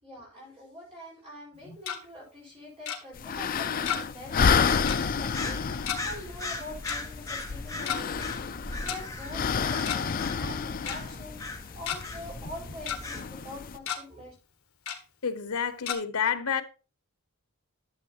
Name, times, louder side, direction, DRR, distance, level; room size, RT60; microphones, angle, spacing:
voice 1, 0.0-11.4 11.8-14.3, left 1 dB, 25° right, 4.4 m, -44 dB
Tick-tock, 1.5-2.0 2.9-3.0 3.9-4.2 4.5-4.6 4.9-5.0 5.9-6.0 6.9-7.0 7.7-8.0 8.9-9.0 9.7-10.1 10.4-10.5 10.9-11.0 11.5-12.0 12.4-13.0 13.4-13.5 13.8-14.0 14.9-15.0 15.9-16.0, left 8 dB, 65° left, 1.5 m, -32 dB
sound 1, 3.1-13.8, left 6 dB, 40° left, 0.4 m, -30 dB
sound 2, 4.5-13.2, left 2 dB, 15° left, 1.1 m, -39 dB
voice 2, 15.2-16.6, left 7 dB, 85° left, 1.0 m, -29 dB
12.0 x 7.1 x 2.8 m
head